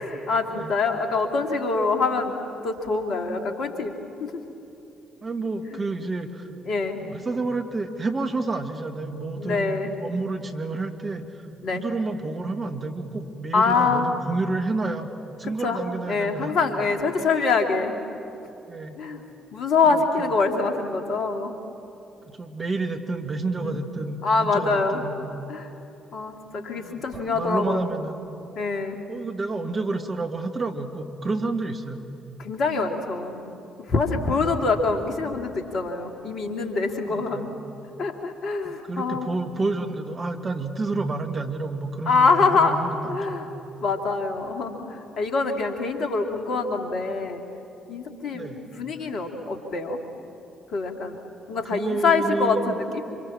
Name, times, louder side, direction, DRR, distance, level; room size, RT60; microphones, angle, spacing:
voice 1, 0.0-2.3 2.6-3.9 4.2-4.4 5.7-5.8 6.7-7.0 9.4-9.9 11.6-11.8 13.5-14.1 15.6-15.8 16.1-18.0 19.0-19.2 19.5-21.5 23.6-23.8 24.2-25.0 25.5-25.7 26.1-27.9 28.5-29.0 32.4-33.5 33.8-37.5 38.0-39.3 42.1-43.5 43.8-47.4 47.9-48.5 48.7-50.0 50.7-51.2 51.5-53.0, left 4 dB, 60° left, 4 dB, 2.8 m, -25 dB
voice 2, 5.2-6.5 7.0-11.3 11.7-15.1 15.4-16.6 18.7-19.0 19.9-20.3 22.3-25.1 26.8-27.1 27.3-28.2 29.1-32.0 34.4-34.5 37.1-37.5 38.7-43.4 48.3-48.6 51.7-52.8, right 3 dB, 35° right, 5 dB, 2.3 m, -29 dB
26.5 x 26.0 x 7.4 m, 2.8 s
figure-of-eight pair, 45°, 0 cm